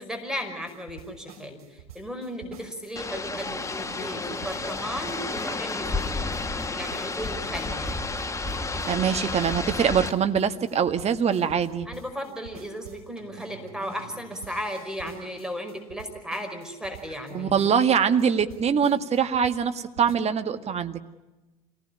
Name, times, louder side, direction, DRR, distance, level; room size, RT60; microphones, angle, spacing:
voice 1, 0.0-3.7 4.0-6.2 6.7-8.0 11.9-18.0, equal, 5° right, 5 dB, 5.3 m, -35 dB
sound 1, 0.7-20.2, right 6 dB, 80° right, 4.7 m, -47 dB
sound 2, 3.0-10.1, left 3 dB, 15° left, 1.7 m, -31 dB
voice 2, 8.8-11.9 17.3-21.0, right 7 dB, 35° right, 8 dB, 1.7 m, -23 dB
27.0 x 19.0 x 9.9 m, 1.1 s
hypercardioid pair, 70°, 19 cm